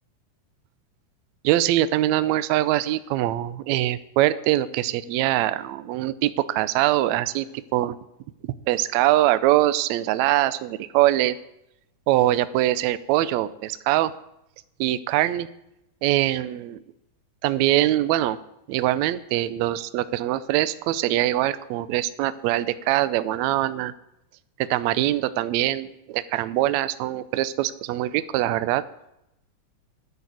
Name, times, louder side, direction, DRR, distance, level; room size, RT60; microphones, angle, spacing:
voice 1, 1.4-8.0 8.7-11.4 12.1-14.1 14.8-15.5 16.0-16.8 17.4-18.4 18.7-23.9 24.6-28.8, right 14 dB, 85° right, 14 dB, 1.6 m, -23 dB
10.5 x 6.7 x 9.2 m, 0.84 s
omnidirectional pair, 3.8 m